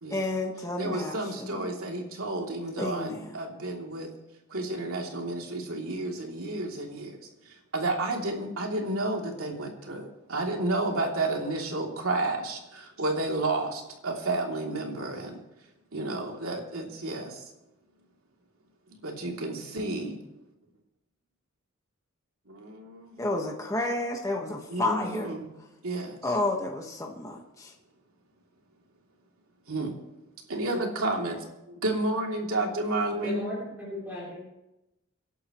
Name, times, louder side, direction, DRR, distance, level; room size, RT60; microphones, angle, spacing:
voice 1, 0.1-1.7 2.8-3.3 23.2-25.3 26.2-27.7, left 2 dB, 15° left, 1 dB, 1.4 m, -31 dB
voice 2, 0.8-4.1 4.5-7.2 7.5-15.4 15.9-17.4 19.0-20.2 22.5-23.3 24.7-25.5 25.8-26.2 29.7-29.9 30.5-33.6, right 2 dB, 90° right, 0 dB, 3.1 m, -31 dB
voice 3, 33.2-34.4, left 1 dB, 10° right, -8 dB, 3.8 m, -36 dB
27.0 x 11.5 x 3.1 m, 0.93 s
head